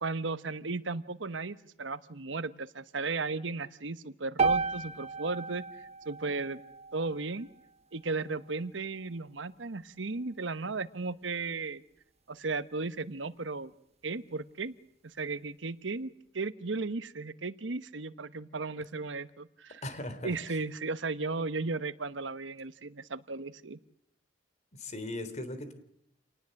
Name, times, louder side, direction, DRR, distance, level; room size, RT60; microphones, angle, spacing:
voice 1, 0.0-5.6 6.0-6.6 6.9-7.5 7.9-11.8 12.3-13.7 14.0-14.7 15.2-19.8 20.2-23.8, right 3 dB, 85° right, 13 dB, 1.1 m, -35 dB
sound 1, 4.4-8.6, right 4 dB, 35° right, 1.1 m, -34 dB
voice 2, 19.8-20.6 24.8-25.7, left 1 dB, 40° left, 11 dB, 3.3 m, -38 dB
28.0 x 19.5 x 7.7 m, 0.77 s
head